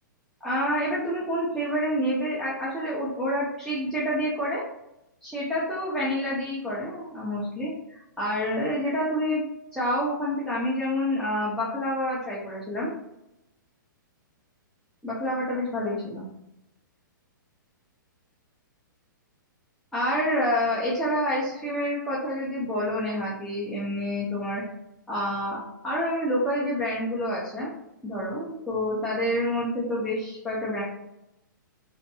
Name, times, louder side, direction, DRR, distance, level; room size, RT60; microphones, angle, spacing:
voice 1, 0.4-4.6 5.2-9.4 9.7-12.9 15.0-16.2 19.9-24.6 25.1-25.6 25.8-27.7 28.0-30.8, equal, ahead, -9 dB, 0.5 m, -28 dB
2.6 x 2.2 x 2.6 m, 0.87 s
figure-of-eight pair, 120°, 11 cm